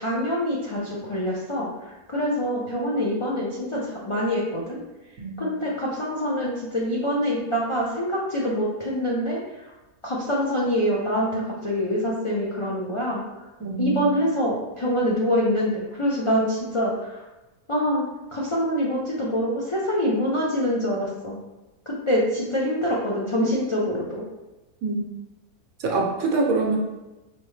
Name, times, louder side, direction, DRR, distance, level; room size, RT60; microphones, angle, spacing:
voice 1, 0.0-4.8 5.4-9.7 10.0-13.2 13.8-17.2 17.7-18.0 18.3-21.4 21.9-24.2, equal, 40° left, -6 dB, 0.4 m, -25 dB
voice 2, 5.2-5.5 13.6-14.1 24.8-25.0 25.8-26.8, right 3 dB, 70° right, 0 dB, 1.1 m, -25 dB
5.2 x 2.9 x 3.2 m, 1.1 s
omnidirectional pair, 1.5 m